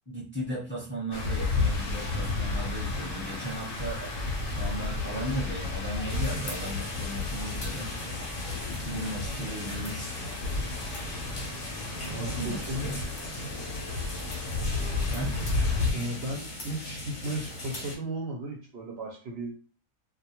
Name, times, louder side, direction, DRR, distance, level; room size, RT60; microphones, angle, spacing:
voice 1, 0.1-4.1 4.4-7.9 8.7-10.1 12.2-13.0 15.0-15.4, right 1 dB, 10° left, -7 dB, 0.8 m, -36 dB
sound 1, 1.1-15.9, left 3 dB, 75° left, 1.0 m, -32 dB
sound 2, 6.1-18.0, left 1 dB, 45° left, 0.8 m, -39 dB
voice 2, 12.0-12.9 15.9-19.6, right 1 dB, 65° right, -1 dB, 0.7 m, -35 dB
2.2 x 2.2 x 2.9 m, 0.39 s
omnidirectional pair, 1.3 m